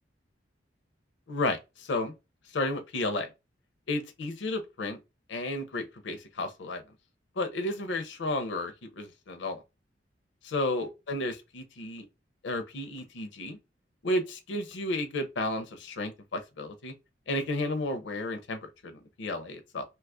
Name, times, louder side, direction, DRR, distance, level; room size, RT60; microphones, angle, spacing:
voice 1, 1.3-2.1 2.5-3.3 3.9-5.0 5.3-6.8 7.4-9.6 10.4-12.1 12.4-13.6 14.0-16.9 17.3-19.8, left 2 dB, 75° left, 0.5 m, -32 dB
2.8 x 2.3 x 3.5 m
head